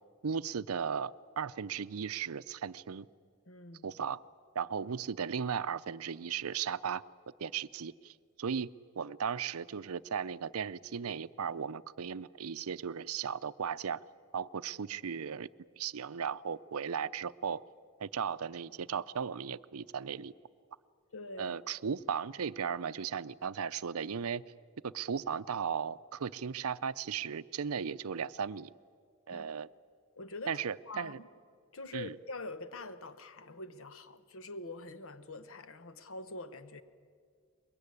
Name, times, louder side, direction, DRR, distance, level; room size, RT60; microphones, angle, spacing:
voice 1, 0.2-3.1 3.8-4.2 4.5-7.0 7.4-8.7 9.0-14.0 14.3-15.5 15.8-17.6 18.0-20.3 21.4-24.4 24.8-28.7 29.3-29.7 30.5-31.2 31.9-32.1, right 7 dB, 75° right, 0.6 m, -36 dB
voice 2, 3.5-3.9 21.1-21.5 29.3-29.4 30.2-31.3 31.7-36.8, left 2 dB, 65° left, 1.1 m, -45 dB
23.5 x 22.0 x 9.7 m
head